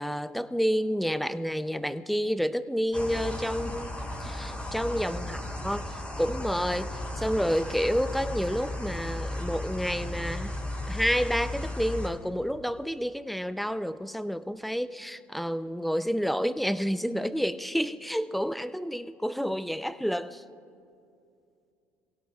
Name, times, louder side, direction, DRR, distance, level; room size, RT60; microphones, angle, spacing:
voice 1, 0.0-3.9 4.2-5.9 6.2-10.5 10.9-20.4, equal, ahead, 13 dB, 0.6 m, -29 dB
sound 1, 2.9-12.1, left 1 dB, 20° left, 4.8 m, -35 dB
27.0 x 17.0 x 2.4 m, 2.5 s
supercardioid pair, 75°, 6 cm